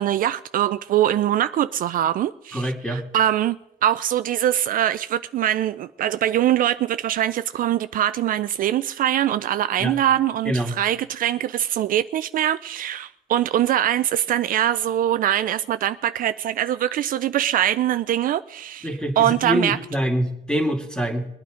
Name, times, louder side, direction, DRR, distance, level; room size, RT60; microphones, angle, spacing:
voice 1, 0.0-3.6 3.8-19.8, right 11 dB, 55° right, 0.4 m, -23 dB
voice 2, 2.5-3.0 9.8-9.9 10.5-10.8 18.8-21.3, equal, 5° left, 2.3 m, -25 dB
21.5 x 9.3 x 5.0 m
cardioid pair, 110°, 17 cm